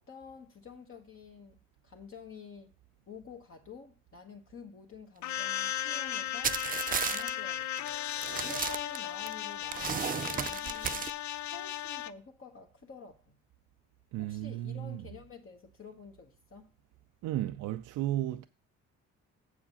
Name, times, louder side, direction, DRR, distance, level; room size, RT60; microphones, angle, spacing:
voice 1, 0.0-2.7 3.1-6.6 7.0-7.9 8.4-11.1 11.5-13.4 14.2-16.7, left 4 dB, 45° left, 1.3 m, -49 dB
sound 1, 5.2-12.1, left 12 dB, 65° left, 0.5 m, -36 dB
sound 2, 6.4-7.3 7.8-7.9 8.2-9.3 9.7-11.1, right 7 dB, 30° right, 0.4 m, -33 dB
voice 2, 14.1-15.0 17.2-18.4, right 13 dB, 85° right, 0.5 m, -34 dB
7.3 x 4.9 x 7.0 m
cardioid pair, 90°, 30 cm